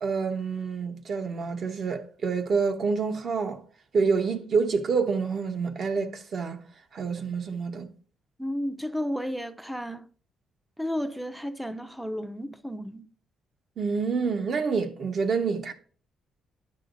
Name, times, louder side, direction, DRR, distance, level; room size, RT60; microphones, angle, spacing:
voice 1, 0.0-3.6 3.9-6.6 6.9-7.9 13.8-15.7, right 5 dB, 55° right, 1.0 m, -27 dB
voice 2, 8.4-10.1 10.8-13.1, equal, ahead, 0.6 m, -32 dB
9.7 x 6.0 x 2.6 m
cardioid pair, 90°, 0 cm